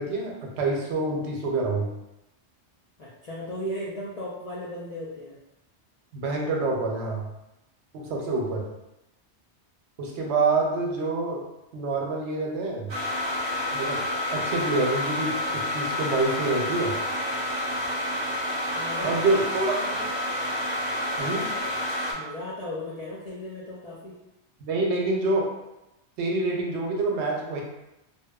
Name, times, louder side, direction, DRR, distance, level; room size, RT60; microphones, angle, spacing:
voice 1, 0.0-1.9 6.1-7.3 7.9-8.7 10.0-11.4 11.7-12.9 13.7-14.0 14.3-16.9 19.0-19.8 21.2-21.5 24.6-25.5 26.2-27.6, right 3 dB, 80° right, -1 dB, 0.9 m, -26 dB
voice 2, 3.0-5.3 8.0-8.3 18.7-19.2 19.6-20.1 22.1-24.2, left 1 dB, 60° left, -8 dB, 0.4 m, -36 dB
sound 1, 12.9-22.1, left 1 dB, 35° right, 0.5 m, -29 dB
2.8 x 2.1 x 2.2 m, 0.93 s
omnidirectional pair, 1.2 m